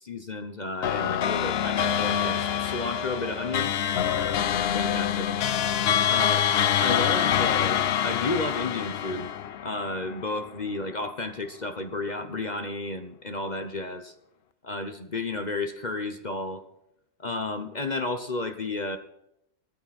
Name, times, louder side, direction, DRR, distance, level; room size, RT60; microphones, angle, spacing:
voice 1, 0.0-3.7 4.7-5.3 6.1-6.4 6.8-9.3 9.6-14.1 14.6-16.6 17.2-19.0, left 2 dB, 35° left, 8 dB, 1.0 m, -32 dB
sound 1, 0.8-10.5, left 9 dB, 55° left, 0.8 m, -26 dB
18.0 x 13.5 x 4.3 m, 0.77 s
omnidirectional pair, 1.4 m